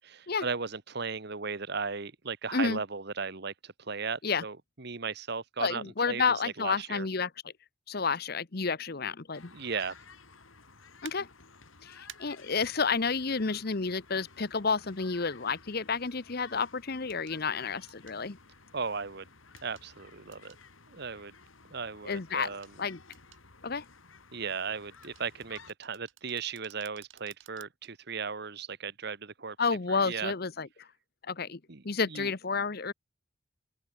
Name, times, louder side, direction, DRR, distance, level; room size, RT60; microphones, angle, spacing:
voice 1, 0.0-7.1 9.5-10.0 18.7-19.3 19.6-20.5 20.9-21.3 21.7-22.7 24.3-29.6 29.9-30.3 31.7-31.8 32.1-32.3, right 5 dB, 55° right, 1.3 m, -36 dB
voice 2, 5.6-7.3 7.9-9.5 11.0-11.3 11.8-18.4 22.0-23.0 23.6-23.9 29.6-30.7 31.3-31.6 31.8-32.9, left 5 dB, 50° left, 1.0 m, -30 dB
sound 1, 9.3-25.7, left 4 dB, 85° left, 4.5 m, -55 dB
sound 2, 11.0-11.2 12.1-12.2 14.2-14.3 17.1-17.4 17.9-18.2 19.6-19.9 20.3-20.6 22.4-22.7 23.1-23.4 25.0-27.9 28.4-28.5, right 11 dB, 70° right, 3.4 m, -53 dB
open air
head